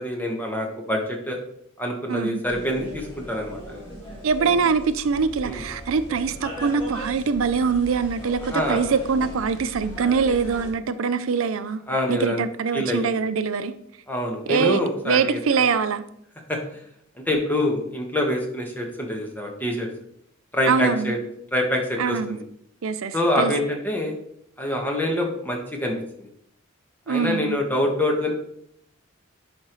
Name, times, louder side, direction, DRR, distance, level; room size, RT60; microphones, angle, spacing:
voice 1, 0.0-1.4 1.8-3.8 5.4-5.6 8.4-8.8 11.9-12.4 12.7-13.1 14.1-15.6 16.5-16.6 17.3-19.9 20.5-21.2 21.5-22.4 23.1-24.1 24.6-26.3 27.1-28.3, left 1 dB, 10° left, 1.3 m, -25 dB
voice 2, 2.1-2.4 4.2-11.8 12.1-13.7 14.5-16.0 20.7-21.1 22.0-22.4 22.8-23.5 27.1-27.6, right 5 dB, 75° right, 0.5 m, -23 dB
sound 1, 2.4-10.7, equal, 25° left, 2.0 m, -38 dB
10.5 x 5.2 x 3.1 m
head